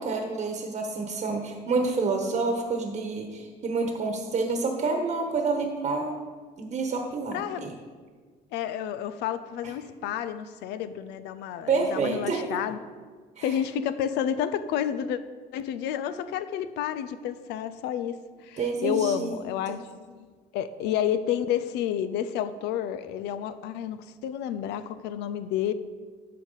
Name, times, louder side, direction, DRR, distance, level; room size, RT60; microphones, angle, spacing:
voice 1, 0.0-6.2 6.6-7.7 9.6-9.7 11.7-12.4 13.4-13.6 18.6-19.4 19.7-19.8, right 4 dB, 45° right, 3 dB, 1.2 m, -28 dB
voice 2, 7.3-7.7 8.5-12.8 13.4-15.2 15.5-20.3 20.5-25.7, left 9 dB, 90° left, 13 dB, 0.5 m, -30 dB
11.5 x 6.5 x 4.0 m, 1.5 s
cardioid pair, 110°, 17 cm